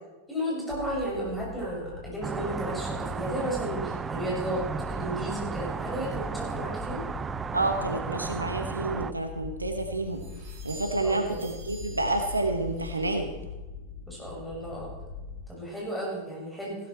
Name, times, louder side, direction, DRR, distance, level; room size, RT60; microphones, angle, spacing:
voice 1, 0.3-7.0 11.0-11.4 14.1-14.9 15.5-16.8, equal, 5° left, -4 dB, 6.0 m, -33 dB
sound 1, 0.7-15.4, left 4 dB, 55° left, 1.9 m, -42 dB
sound 2, 2.2-9.1, right 5 dB, 20° right, 0.4 m, -34 dB
sound 3, 7.1-13.5, right 2 dB, 45° right, 4.2 m, -51 dB
voice 2, 7.5-10.2 10.6-13.3, right 2 dB, 80° right, 7 dB, 1.2 m, -29 dB
16.0 x 12.5 x 4.3 m, 1.1 s
figure-of-eight pair, 90°, 0 cm